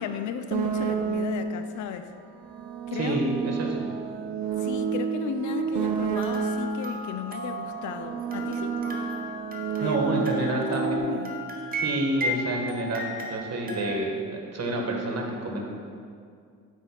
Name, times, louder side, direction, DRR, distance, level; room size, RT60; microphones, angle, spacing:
voice 1, 0.0-2.1 2.9-3.2 4.6-8.8 9.8-11.4, left 8 dB, 50° left, 0.5 m, -35 dB
sound 1, 0.5-1.6 2.4-6.8 7.6-11.0, right 6 dB, 60° right, 0.6 m, -30 dB
voice 2, 2.9-3.9 9.8-11.0 11.7-15.7, right 1 dB, 40° right, 1.4 m, -29 dB
sound 2, 6.1-14.0, equal, 20° right, 1.0 m, -35 dB
7.7 x 2.6 x 5.7 m
hypercardioid pair, 55°, 40 cm